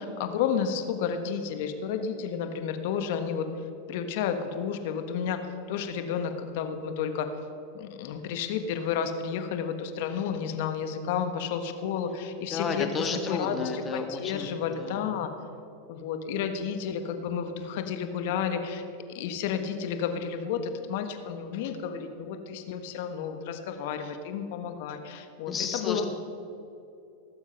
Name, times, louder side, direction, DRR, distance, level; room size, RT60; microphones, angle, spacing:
voice 1, 0.0-3.5 3.9-5.4 5.7-7.3 7.7-12.9 13.3-15.3 15.9-18.8 19.1-26.1, left 7 dB, 65° left, 8 dB, 1.3 m, -31 dB
voice 2, 12.5-14.5 14.8-15.1 25.5-26.1, left 5 dB, 25° left, 5 dB, 1.7 m, -32 dB
18.0 x 7.3 x 5.7 m, 2.6 s
hypercardioid pair, 115°, 0 cm